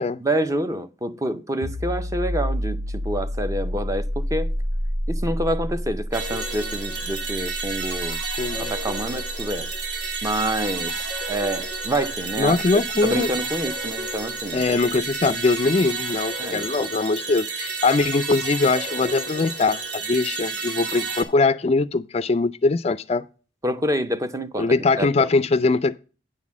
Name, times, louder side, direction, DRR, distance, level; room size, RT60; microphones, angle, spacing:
voice 1, 0.2-4.5 5.1-8.2 8.5-9.7 10.2-14.8 16.4-16.9 23.6-25.3, right 1 dB, 15° right, 0.6 m, -27 dB
sound 1, 1.6-13.0, equal, 80° right, 1.1 m, -30 dB
sound 2, 6.1-21.2, right 4 dB, 60° right, 1.8 m, -31 dB
voice 2, 8.4-8.7 12.4-13.3 14.5-23.2 24.6-26.0, left 3 dB, 35° left, 0.4 m, -22 dB
9.5 x 4.0 x 7.2 m
head